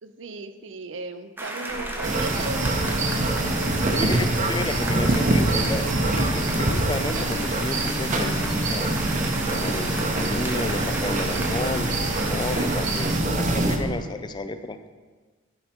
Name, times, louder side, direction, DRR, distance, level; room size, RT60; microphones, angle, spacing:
voice 1, 0.0-3.0 3.8-4.2 4.7-5.9, right 3 dB, 70° right, 10 dB, 0.6 m, -38 dB
sound 1, 1.4-13.2, right 1 dB, 10° right, 0.8 m, -34 dB
sound 2, 1.7-14.0, equal, 40° left, 2.2 m, -35 dB
sound 3, 2.0-13.8, right 2 dB, 40° right, 0.8 m, -25 dB
voice 2, 3.9-5.9 6.1-8.9 9.5-14.8, left 2 dB, 20° left, 10 dB, 0.4 m, -32 dB
12.0 x 5.5 x 4.4 m, 1.4 s
head